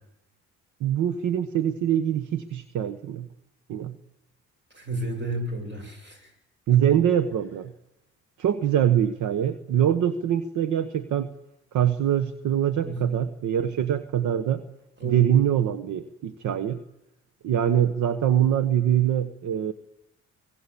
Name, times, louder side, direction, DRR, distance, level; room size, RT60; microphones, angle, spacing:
voice 1, 0.8-3.3 3.7-3.9 6.7-7.7 8.4-11.3 11.7-14.6 15.0-16.8 17.4-19.7, right 10 dB, 75° right, 10 dB, 1.3 m, -23 dB
voice 2, 4.7-6.3 6.7-7.0 12.9-13.2 15.0-15.3, right 1 dB, 35° right, 5 dB, 7.8 m, -32 dB
24.5 x 20.0 x 8.5 m, 0.88 s
cardioid pair, 90°, 30 cm